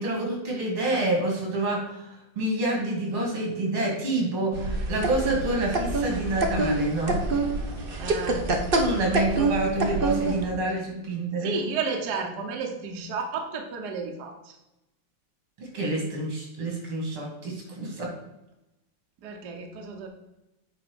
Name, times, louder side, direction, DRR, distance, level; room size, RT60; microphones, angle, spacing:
voice 1, 0.0-2.1 2.4-7.3 8.7-11.6 15.6-18.1, right 2 dB, 85° right, 0 dB, 3.2 m, -28 dB
sound 1, 4.5-10.5, right 2 dB, 40° right, 0.8 m, -26 dB
voice 2, 8.0-8.5 11.4-14.6 19.2-20.1, right 4 dB, 55° right, 3 dB, 1.5 m, -32 dB
8.8 x 4.0 x 6.2 m, 0.92 s
omnidirectional pair, 2.3 m